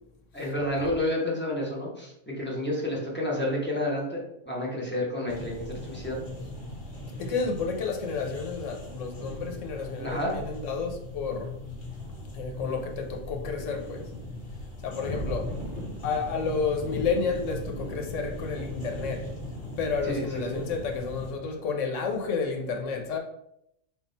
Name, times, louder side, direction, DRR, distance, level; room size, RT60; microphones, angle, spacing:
voice 1, 0.3-4.2 4.4-6.2 9.8-10.3 20.0-20.6, left 1 dB, 10° left, 0.9 m, -30 dB
sound 1, 5.3-21.3, left 1 dB, 55° left, 1.1 m, -38 dB
voice 2, 7.2-11.5 12.3-14.0 14.8-15.6 16.0-19.3 19.8-23.2, left 5 dB, 80° left, 1.1 m, -31 dB
3.6 x 2.4 x 4.0 m
omnidirectional pair, 1.3 m